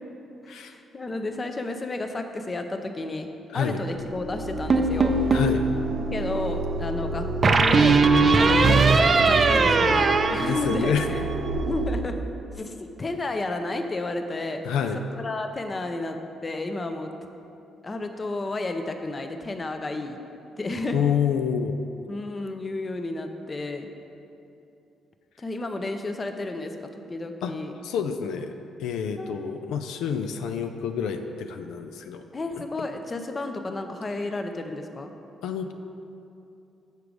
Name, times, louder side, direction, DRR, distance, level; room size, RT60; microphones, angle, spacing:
voice 1, 0.4-3.3 3.5-5.2 6.1-11.2 11.7-12.2 12.5-14.6 15.1-17.1 17.8-20.2 20.6-21.0 22.1-23.9 25.4-26.8 27.1-27.7 29.0-29.6 32.3-35.1, left 2 dB, 30° left, 6 dB, 0.5 m, -32 dB
sound 1, 3.9-11.9, right 3 dB, 70° right, 0.8 m, -30 dB
sound 2, 4.7-5.6 7.4-11.2, right 3 dB, 40° right, 0.4 m, -19 dB
voice 2, 5.3-5.6 9.9-10.0 10.3-11.1 14.6-15.0 20.9-21.8 27.4-27.5 27.8-28.5 28.8-32.3 35.4-35.7, left 7 dB, 85° left, 6 dB, 0.3 m, -28 dB
6.7 x 4.7 x 5.1 m, 2.7 s
cardioid pair, 90°, 0 cm